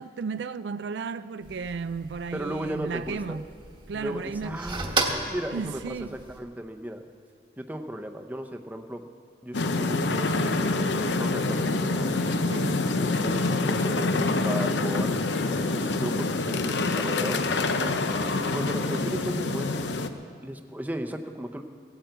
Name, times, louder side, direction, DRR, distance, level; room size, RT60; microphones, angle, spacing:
voice 1, 0.0-3.5 3.9-4.6 5.5-6.2 12.5-12.8 17.7-18.1, right 5 dB, 75° right, 0.4 m, -34 dB
sound 1, 1.4-6.4, right 3 dB, 30° right, 1.1 m, -34 dB
voice 2, 2.3-3.4 3.9-7.1 7.6-9.1 9.4-12.1 13.1-17.4 18.2-19.8 20.4-21.6, right 1 dB, 10° right, 0.7 m, -35 dB
sound 2, 9.5-20.1, left 3 dB, 80° left, 0.7 m, -26 dB
17.0 x 8.8 x 8.0 m
head